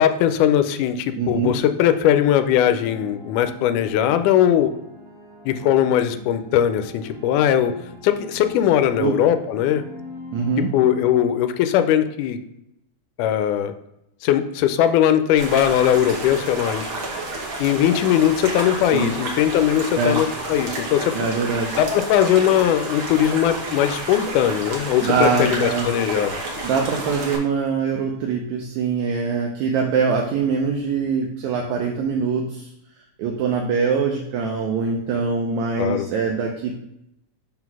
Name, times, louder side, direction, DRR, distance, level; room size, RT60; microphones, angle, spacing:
voice 1, 0.0-4.7 5.5-7.8 8.0-9.8 10.7-12.4 13.2-13.7 14.2-16.8 17.6-21.2 21.8-26.4 35.8-36.1, left 10 dB, 90° left, 10 dB, 2.1 m, -19 dB
voice 2, 1.2-1.5 9.0-9.2 10.3-10.7 18.9-19.1 20.0-20.2 21.2-21.8 25.0-25.9 26.6-32.7 33.2-36.7, right 5 dB, 75° right, 1 dB, 1.9 m, -23 dB
sound 1, 2.2-11.3, left 2 dB, ahead, 1.3 m, -41 dB
sound 2, 15.4-27.4, right 2 dB, 55° right, 1.6 m, -30 dB
5.2 x 3.8 x 5.9 m, 0.84 s
omnidirectional pair, 3.5 m